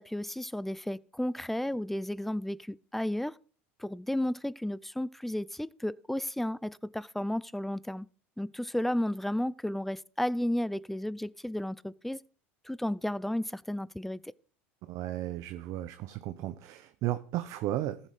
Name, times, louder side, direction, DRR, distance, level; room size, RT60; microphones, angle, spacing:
voice 1, 0.0-3.4 3.8-8.1 8.4-12.2 12.7-14.2, left 1 dB, 5° left, 0.5 m, -33 dB
voice 2, 14.8-18.1, right 14 dB, 60° right, 0.8 m, -34 dB
14.5 x 7.3 x 5.0 m
hypercardioid pair, 85°, 7 cm